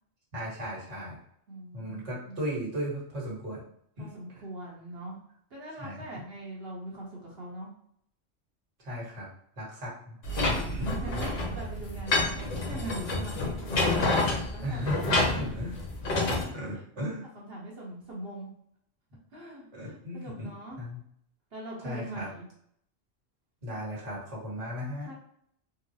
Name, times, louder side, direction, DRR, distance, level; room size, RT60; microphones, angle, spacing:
voice 1, 0.3-1.2 1.7-3.6 4.0-4.1 5.8-6.0 8.8-9.3 9.6-10.2 10.8-10.9 14.6-15.7 16.5-17.3 19.7-20.5 20.8-21.0 21.8-22.3 23.6-25.1, equal, 75° right, -4 dB, 1.5 m, -36 dB
voice 2, 1.5-2.4 4.0-5.2 5.5-7.7 10.4-13.9 14.5-15.5 16.1-16.8 17.3-18.5 19.3-20.8 21.5-22.5 25.0-25.1, right 1 dB, 55° right, -4 dB, 1.1 m, -42 dB
sound 1, 10.2-16.4, left 2 dB, 85° left, 1.2 m, -28 dB
3.8 x 2.0 x 2.7 m, 0.69 s
omnidirectional pair, 1.2 m